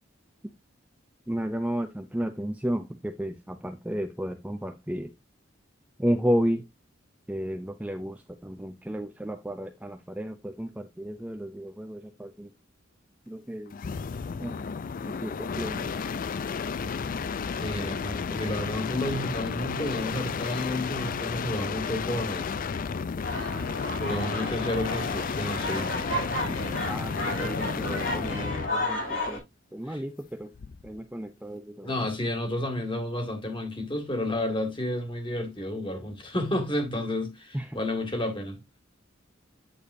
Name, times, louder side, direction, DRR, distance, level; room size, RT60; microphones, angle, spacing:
voice 1, 1.3-5.1 6.0-6.6 7.3-12.5 13.3-13.8 14.4-14.6 15.0-15.9 24.2-24.4 26.9-29.4 29.7-30.5 30.8-32.0 37.5-37.8, equal, 5° right, 0.6 m, -32 dB
sound 1, 13.7-28.8 30.5-31.0, left 5 dB, 45° left, 0.4 m, -32 dB
voice 2, 17.6-22.5 24.0-25.9 29.9-30.0 31.8-38.6, left 1 dB, 25° left, 2.0 m, -31 dB
sound 2, 23.2-29.4, left 1 dB, 70° left, 6.0 m, -32 dB
8.8 x 6.8 x 2.6 m
head